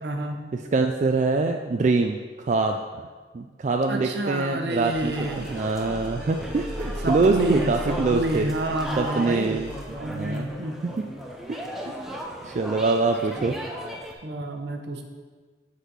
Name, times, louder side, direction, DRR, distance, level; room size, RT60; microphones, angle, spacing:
voice 1, 0.0-0.5 3.9-5.6 7.0-10.8 14.0-15.0, right 1 dB, 75° right, 4 dB, 0.9 m, -29 dB
voice 2, 0.7-2.8 3.3-5.1 5.5-8.5 9.0-9.7 10.1-10.5 11.0-11.1 11.5-11.9 12.4-13.5, right 3 dB, 40° right, 4 dB, 0.3 m, -24 dB
sound 1, 4.7-9.8, equal, 25° right, 1.5 m, -38 dB
sound 2, 5.1-14.1, equal, ahead, 0.6 m, -36 dB
8.0 x 4.1 x 6.1 m, 1.5 s
head